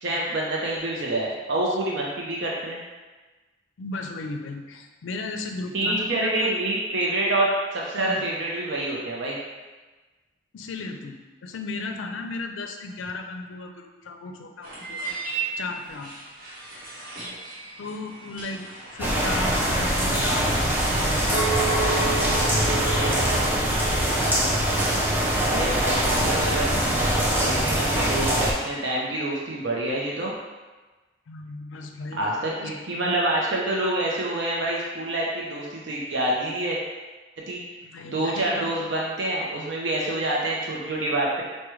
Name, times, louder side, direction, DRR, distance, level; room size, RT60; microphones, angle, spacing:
voice 1, 0.0-2.8 5.7-9.4 25.4-26.6 27.4-30.3 32.1-36.8 37.5-37.6 38.0-41.4, right 1 dB, 65° right, -4 dB, 0.5 m, -27 dB
voice 2, 3.8-6.5 8.0-8.2 10.5-15.2 15.6-16.1 17.8-20.7 21.2-22.0 22.6-23.4 26.1-26.7 31.3-32.7 33.0-33.2 37.7-38.9, left 3 dB, 80° left, 4 dB, 0.4 m, -36 dB
sound 1, 14.6-23.3, right 3 dB, 45° right, 1.1 m, -37 dB
sound 2, 19.0-28.5, right 1 dB, 10° right, 0.4 m, -23 dB
Chink clink, 21.3-25.6 26.1-26.5, right 4 dB, 10° left, 0.9 m, -32 dB
4.7 x 2.1 x 3.1 m, 1.2 s
head